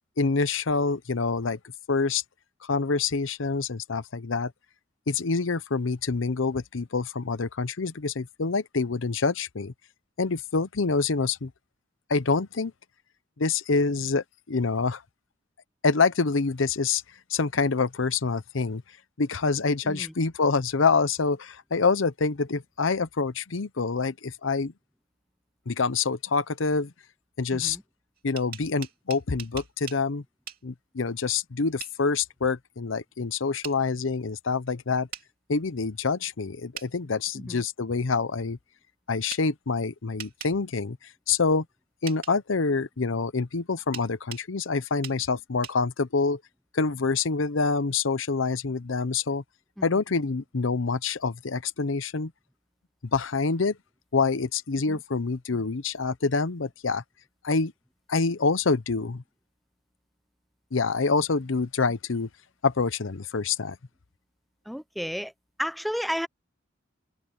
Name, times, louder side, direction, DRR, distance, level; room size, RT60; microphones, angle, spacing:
voice 1, 0.2-1.6 1.9-2.2 2.6-4.5 5.1-9.7 10.2-11.5 12.1-12.7 13.4-15.0 15.8-17.0 17.3-18.8 19.2-24.7 25.7-26.9 27.4-27.8 28.2-30.2 30.6-35.1 35.5-38.6 39.1-41.6 42.0-46.4 46.7-49.4 49.8-52.3 53.1-53.8 54.1-57.0 57.4-57.7 58.1-59.2 60.7-62.3 62.6-63.8, left 4 dB, 80° left, 0.8 m, -26 dB
voice 2, 27.5-27.8 37.4-37.6 49.8-50.0 54.9-55.0 64.7-65.3 65.6-66.3, equal, ahead, 0.5 m, -32 dB
sound 1, 28.2-30.0 30.5-30.6 31.8-32.0 33.6-33.8 35.1-35.3 36.7-36.9 39.3-39.4 40.2-40.5 42.1-42.3 43.9-44.5 45.0-45.2 45.6-45.8, right 9 dB, 50° right, 2.8 m, -40 dB
open air
head